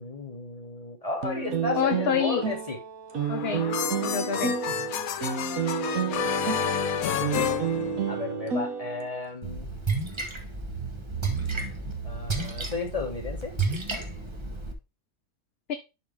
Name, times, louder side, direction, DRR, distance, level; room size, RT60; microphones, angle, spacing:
voice 1, 0.0-2.8 4.7-4.9 8.1-9.7 12.0-13.6, left 3 dB, 25° left, 1.9 m, -34 dB
sound 1, 1.2-9.3, right 6 dB, 80° right, 1.5 m, -30 dB
voice 2, 1.7-2.5 3.3-3.7 4.0-4.6 15.7-15.8, left 8 dB, 55° left, 0.8 m, -27 dB
sound 2, 3.2-8.5, left 8 dB, 85° left, 1.2 m, -30 dB
Splash splatter, 9.4-14.7, right 4 dB, 20° right, 1.2 m, -31 dB
10.5 x 4.1 x 3.5 m
omnidirectional pair, 1.4 m